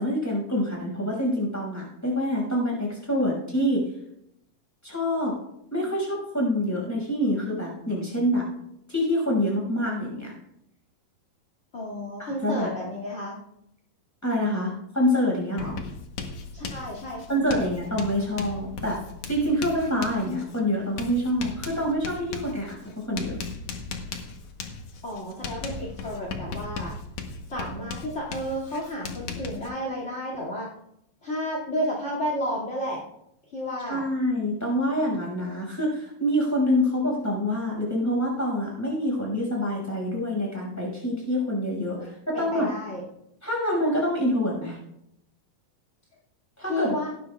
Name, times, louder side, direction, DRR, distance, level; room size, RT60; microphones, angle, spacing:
voice 1, 0.0-3.9 4.8-5.4 5.7-8.5 8.9-10.3 12.2-12.7 14.2-15.8 17.3-19.0 19.3-23.4 33.9-42.0 42.3-42.7 43.4-44.8 46.6-46.9, equal, 5° left, -2 dB, 5.4 m, -26 dB
voice 2, 11.7-13.4 16.5-17.7 25.0-26.9 27.5-30.7 31.2-33.0 33.5-34.1 42.0-43.0 46.6-47.1, equal, 25° left, -4 dB, 1.7 m, -32 dB
Writing, 15.6-29.7, left 4 dB, 80° left, 1.4 m, -37 dB
17.5 x 13.0 x 2.4 m, 0.80 s
omnidirectional pair, 4.6 m